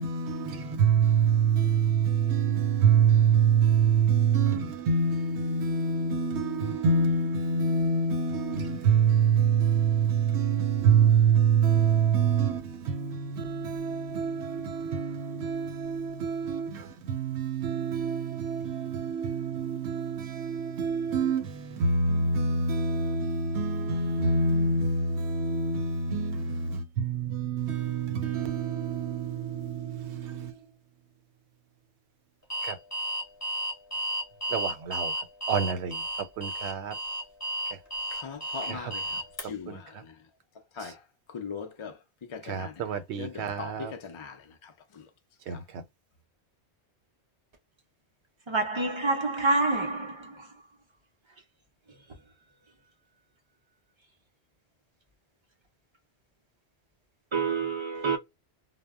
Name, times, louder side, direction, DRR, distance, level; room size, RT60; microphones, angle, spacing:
voice 1, 0.0-30.5 32.6-32.8 34.5-35.1 35.5-36.0 36.4-36.9 38.7-38.9 39.7-39.8 40.8-40.9 42.4-43.9 45.5-45.8, right 6 dB, 90° right, 0.9 m, -26 dB
Alarm, 32.5-39.4, right 1 dB, 15° left, 0.7 m, -33 dB
voice 2, 38.1-39.2 39.5-39.8 40.8-41.0 41.3-41.9 42.3-45.0 45.5-45.6, left 6 dB, 50° left, 0.3 m, -40 dB
voice 3, 48.5-50.2 57.3-58.2, right 3 dB, 45° right, 0.4 m, -27 dB
2.1 x 2.0 x 3.4 m
omnidirectional pair, 1.1 m